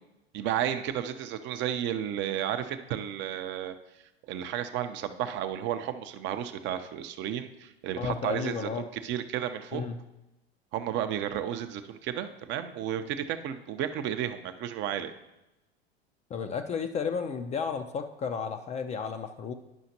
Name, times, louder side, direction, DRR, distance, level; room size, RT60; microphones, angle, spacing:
voice 1, 0.3-3.7 4.3-9.9 10.7-15.1, right 10 dB, 35° right, 9 dB, 0.5 m, -32 dB
voice 2, 8.0-8.9 9.7-10.0 16.3-19.5, left 6 dB, 20° left, 7 dB, 0.4 m, -33 dB
10.5 x 5.6 x 2.8 m, 0.96 s
figure-of-eight pair, 85°, 32 cm